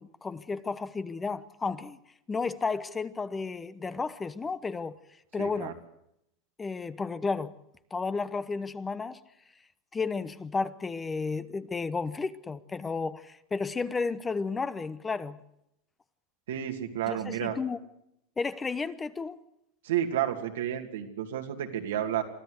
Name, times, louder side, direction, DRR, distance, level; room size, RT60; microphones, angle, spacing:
voice 1, 0.0-2.0 2.3-5.0 5.3-5.7 6.6-7.6 7.9-9.2 9.9-15.4 17.1-17.8 18.4-19.4, left 4 dB, 15° left, 0.9 m, -32 dB
voice 2, 5.4-5.7 16.5-17.6 19.8-22.2, right 10 dB, 85° right, 2.6 m, -31 dB
23.5 x 14.0 x 8.1 m
hypercardioid pair, 115°, 0 cm